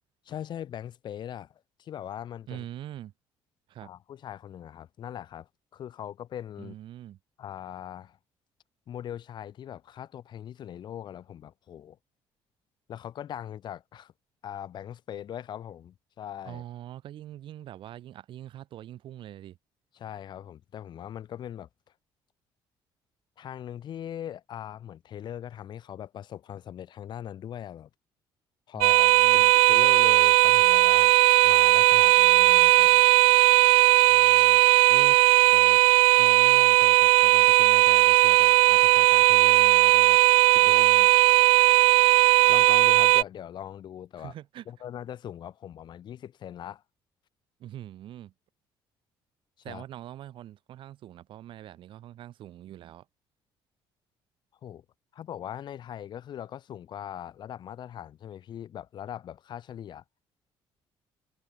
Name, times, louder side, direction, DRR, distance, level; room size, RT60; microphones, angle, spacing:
voice 1, 0.3-2.6 3.8-6.8 7.4-8.2 8.9-12.0 12.9-14.1 14.4-16.6 19.9-21.7 23.4-27.9 28.7-31.1 31.4-33.0 40.6-40.9 42.5-44.3 44.7-46.8 49.7-49.8 54.6-54.8 55.1-60.0, left 10 dB, 55° left, 3.9 m, -40 dB
voice 2, 2.5-3.1 3.7-3.9 6.6-7.2 16.5-19.6 28.7-29.5 34.1-34.6 34.9-35.2 35.5-35.8 36.2-40.2 40.5-41.1 42.4-42.5 44.2-44.7 47.6-48.3 49.6-53.1, right 12 dB, 65° right, 3.7 m, -43 dB
sound 1, 28.8-43.2, right 19 dB, 85° right, 0.3 m, -18 dB
cardioid pair, 125°, 9 cm